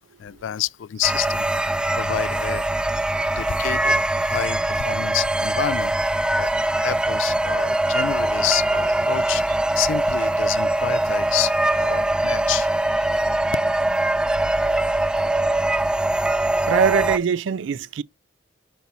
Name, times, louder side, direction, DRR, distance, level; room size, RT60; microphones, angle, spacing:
voice 1, 0.2-2.6 3.4-5.9 6.4-6.5 6.7-12.7, left 11 dB, 85° left, 0.3 m, -29 dB
sound 1, 1.0-17.2, right 1 dB, 5° right, 0.3 m, -22 dB
voice 2, 16.7-18.0, right 7 dB, 75° right, 0.4 m, -21 dB
5.9 x 5.4 x 4.1 m
head